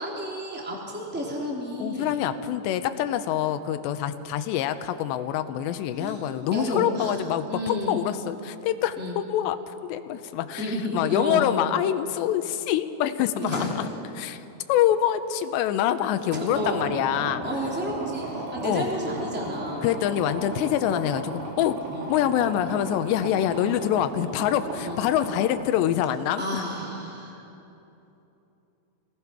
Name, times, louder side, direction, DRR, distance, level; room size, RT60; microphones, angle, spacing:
voice 1, 0.0-2.2 6.0-6.2 6.5-7.2 7.5-8.0 9.0-9.2 10.6-11.5 13.4-13.8 16.3-16.8 17.4-19.9 21.9-22.1 23.5-23.7 24.8-25.0 26.4-27.3, equal, 5° right, -3 dB, 2.9 m, -31 dB
voice 2, 1.8-9.6 9.8-13.9 14.2-14.4 14.7-17.4 18.6-18.9 19.8-21.8 22.1-26.6, left 11 dB, 85° left, 10 dB, 3.0 m, -25 dB
sound 1, 16.4-25.4, right 2 dB, 75° right, 5.4 m, -35 dB
28.0 x 19.5 x 6.0 m, 2.9 s
omnidirectional pair, 5.0 m